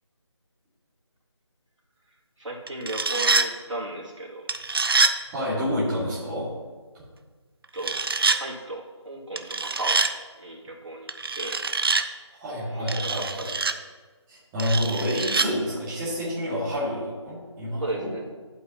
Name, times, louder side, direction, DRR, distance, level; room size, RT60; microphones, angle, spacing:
voice 1, 2.4-4.5 7.7-8.0 8.3-10.0 10.4-11.1 11.4-11.6 12.7-13.8 17.8-18.2, right 2 dB, 85° right, -3 dB, 2.4 m, -35 dB
sound 1, 2.7-3.5 4.5-5.2 7.8-8.4 9.4-10.1 11.1-12.1 12.9-13.7 14.6-15.5, right 4 dB, 50° right, 0.5 m, -25 dB
voice 2, 5.3-6.5 12.4-13.2 14.3-18.1, equal, 10° right, -11 dB, 2.1 m, -28 dB
12.0 x 8.3 x 2.9 m, 1.4 s
figure-of-eight pair, 170°, 15 cm